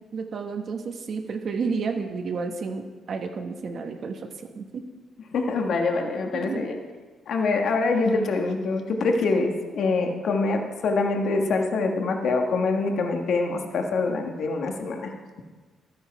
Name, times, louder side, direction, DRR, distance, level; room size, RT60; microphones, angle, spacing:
voice 1, 0.1-4.3 4.5-4.7 6.3-6.6, right 4 dB, 55° right, 5 dB, 1.1 m, -31 dB
voice 2, 5.3-6.7 7.3-15.1, left 3 dB, 65° left, 4 dB, 1.3 m, -25 dB
12.0 x 9.4 x 4.7 m, 1.4 s
cardioid pair, 90°, 0 cm